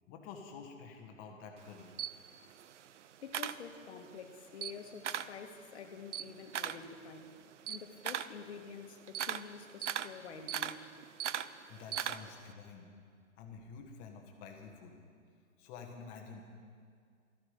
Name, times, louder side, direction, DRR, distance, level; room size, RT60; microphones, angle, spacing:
voice 1, 0.1-1.9 11.7-12.9 13.4-14.9 15.6-16.4, left 5 dB, 20° left, 3 dB, 1.2 m, -49 dB
Camera, 1.6-4.2 4.5-5.4 5.8-12.5, right 10 dB, 55° right, 0.5 m, -39 dB
voice 2, 3.2-7.3 7.7-10.9, left 6 dB, 50° left, 6 dB, 1.4 m, -48 dB
14.0 x 13.0 x 5.0 m, 2.1 s
hypercardioid pair, 145°, 42 cm